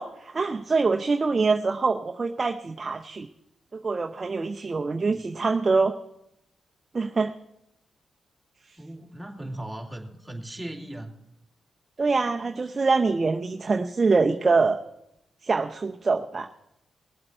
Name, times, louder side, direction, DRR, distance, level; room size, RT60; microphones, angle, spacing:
voice 1, 0.0-3.3 3.7-5.9 6.9-7.3 8.7-8.8 12.0-14.8 15.4-16.5, right 4 dB, 45° right, 5 dB, 0.7 m, -24 dB
voice 2, 8.8-11.1, right 1 dB, 5° right, 0 dB, 2.8 m, -38 dB
19.5 x 7.8 x 4.5 m, 0.82 s
supercardioid pair, 50°, 0 cm